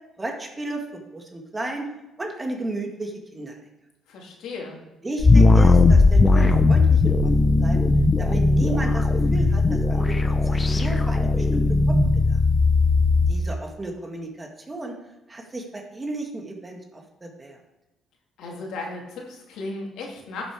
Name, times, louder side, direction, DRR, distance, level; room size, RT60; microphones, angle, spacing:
voice 1, 0.2-0.8 1.1-1.9 2.2-3.6 5.0-7.3 7.6-7.8 8.2-11.6 11.9-12.4 13.3-15.0 15.3-17.6, right 2 dB, 20° right, 2 dB, 1.9 m, -33 dB
voice 2, 4.1-4.8 18.4-20.5, left 3 dB, 80° left, 0 dB, 2.4 m, -35 dB
sound 1, 5.2-13.4, left 3 dB, 25° left, 0.9 m, -18 dB
11.5 x 6.9 x 4.8 m, 1.0 s
cardioid pair, 95°, 0 cm